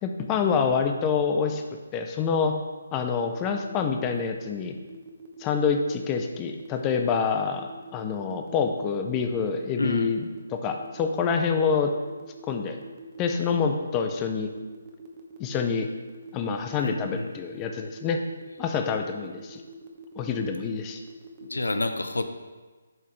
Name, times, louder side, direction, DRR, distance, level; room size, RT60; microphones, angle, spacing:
voice 1, 0.0-1.6 1.9-2.5 2.9-4.8 5.4-11.9 12.4-12.8 13.2-14.5 15.4-15.9 16.3-18.2 18.6-19.6 20.2-21.0, left 6 dB, 20° left, 5 dB, 0.6 m, -27 dB
sound 1, 3.3-21.8, right 6 dB, 25° right, 1.1 m, -46 dB
voice 2, 9.8-10.1 16.8-17.3 21.4-22.3, left 2 dB, 75° left, 8 dB, 0.7 m, -29 dB
10.5 x 5.6 x 3.2 m, 1.3 s
figure-of-eight pair, 145°, 0 cm